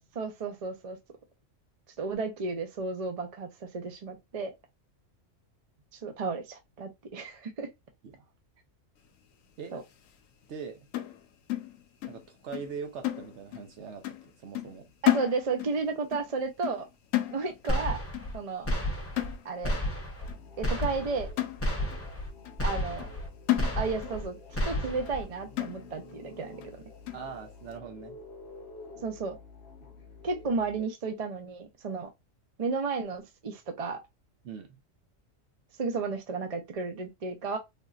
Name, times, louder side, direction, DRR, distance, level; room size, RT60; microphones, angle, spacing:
voice 1, 0.1-1.0 2.0-4.5 6.0-7.7 9.7-9.8 15.0-16.9 17.3-18.0 18.3-18.7 19.4-19.8 20.6-21.3 22.6-23.1 23.8-26.8 29.0-29.4 30.2-32.1 32.6-34.0 35.8-37.6, right 4 dB, 40° right, 0.5 m, -33 dB
voice 2, 10.5-10.9 12.1-14.9 27.1-28.2 34.4-34.8, right 6 dB, 65° right, 1.0 m, -42 dB
sound 1, 10.9-12.3 12.5-12.8 13.0-13.7 14.0-14.3 14.6-15.8 16.1-16.3 16.6-16.9 17.1-17.8 18.1-18.4 18.7-18.9 19.2-19.8 20.3-20.4 20.8-21.0 21.4-22.1 22.5-22.6 23.0-23.2 23.5-24.2 24.5-24.6 25.1-25.2 25.6-26.1 26.6-26.7 27.1-27.3, left 15 dB, 80° left, 1.0 m, -32 dB
sound 2, 17.7-18.4 18.7-19.4 19.6-20.3 20.6-21.3 21.6-22.3 22.6-23.3 23.6-24.3 24.6-25.2, equal, 15° left, 0.7 m, -31 dB
sound 3, 20.2-30.8, left 3 dB, 60° left, 1.0 m, -49 dB
3.6 x 2.6 x 2.4 m
omnidirectional pair, 1.4 m